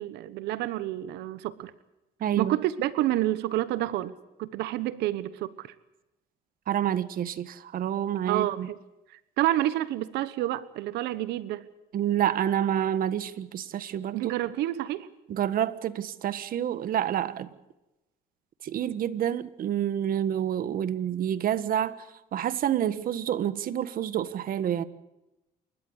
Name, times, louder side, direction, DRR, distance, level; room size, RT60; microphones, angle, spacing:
voice 1, 0.0-1.7 2.4-4.1 4.4-5.7 8.3-8.8 9.1-11.6 14.1-15.1, right 14 dB, 85° right, 15 dB, 1.1 m, -29 dB
voice 2, 2.2-2.6 6.7-8.7 11.9-14.3 15.3-17.5 18.6-22.0 22.3-24.8, right 10 dB, 60° right, 14 dB, 1.5 m, -28 dB
28.5 x 14.0 x 8.1 m, 0.97 s
cardioid pair, 110°, 17 cm